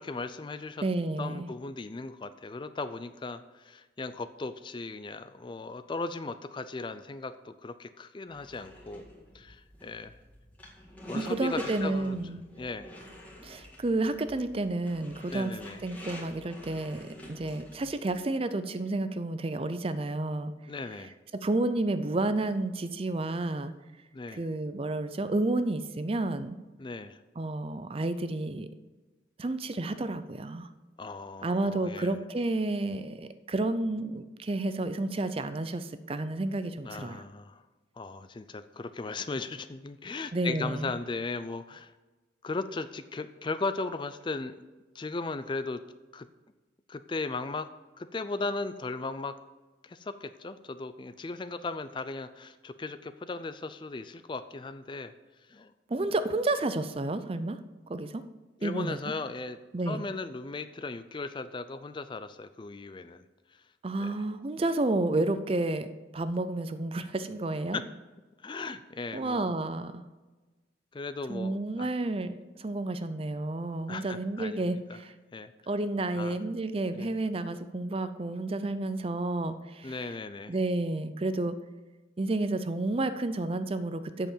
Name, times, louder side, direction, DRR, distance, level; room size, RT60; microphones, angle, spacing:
voice 1, 0.0-0.8 1.2-9.0 9.3-10.2 11.1-12.2 12.6-12.9 15.3-15.8 20.7-21.1 24.1-24.4 26.8-27.2 31.0-32.2 36.8-37.6 38.0-41.9 42.4-44.5 44.9-45.8 46.1-46.3 46.9-47.7 48.0-49.3 49.8-55.1 55.5-55.7 58.6-59.6 59.9-63.2 63.5-63.6 64.0-64.1 67.7-67.8 68.4-69.5 70.9-71.9 73.9-75.0 75.3-75.5 76.1-76.4 76.9-77.1 79.8-80.5, left 3 dB, 25° left, 12 dB, 0.4 m, -37 dB
voice 2, 0.8-1.5 11.1-12.4 13.4-15.5 15.8-20.5 21.3-23.7 24.3-26.6 27.4-28.7 29.4-30.7 31.4-37.2 40.3-40.9 55.9-57.6 57.9-58.2 58.6-59.0 59.7-60.0 63.8-67.8 69.1-70.0 71.3-75.1 75.7-80.0 80.5-81.6 82.2-84.3, right 2 dB, 30° right, 12 dB, 0.5 m, -31 dB
sound 1, 8.3-18.0, left 1 dB, 10° left, 1.9 m, -47 dB
8.0 x 6.8 x 7.3 m, 1.2 s
head